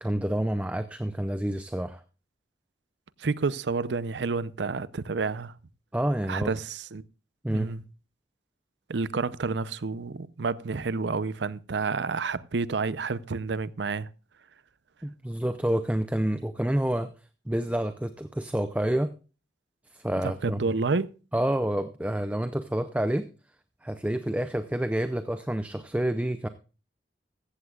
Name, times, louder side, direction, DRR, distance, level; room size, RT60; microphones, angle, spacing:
voice 1, 0.0-2.0 5.9-6.5 7.4-7.7 15.0-17.1 17.5-19.1 19.9-20.6 21.3-23.3 23.8-26.5, right 1 dB, 10° right, 0.5 m, -28 dB
voice 2, 3.2-5.5 6.3-7.0 7.5-7.8 8.9-14.1 20.2-21.1, right 4 dB, 85° right, 0.6 m, -29 dB
15.5 x 14.5 x 2.4 m
head